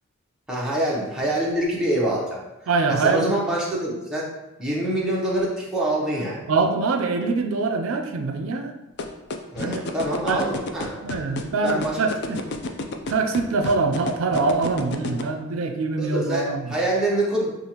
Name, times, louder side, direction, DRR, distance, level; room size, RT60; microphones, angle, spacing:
voice 1, 0.5-2.4 2.9-4.3 4.6-6.4 9.5-11.2 11.6-12.0 15.1-15.3 16.0-17.5, right 1 dB, 5° right, -6 dB, 0.9 m, -25 dB
voice 2, 2.7-3.4 6.5-8.7 9.6-9.8 10.3-10.5 11.0-12.4 13.1-16.7, right 4 dB, 80° right, 5 dB, 0.4 m, -24 dB
sound 1, 9.0-15.2, left 3 dB, 55° left, 0.4 m, -29 dB
6.6 x 2.4 x 2.9 m, 1.0 s
head